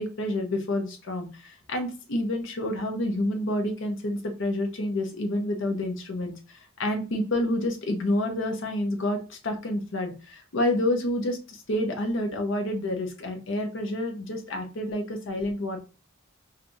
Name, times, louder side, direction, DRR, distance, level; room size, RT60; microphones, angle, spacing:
voice 1, 0.0-15.8, left 1 dB, 65° left, 4 dB, 0.7 m, -29 dB
4.5 x 2.5 x 2.6 m, 0.32 s
head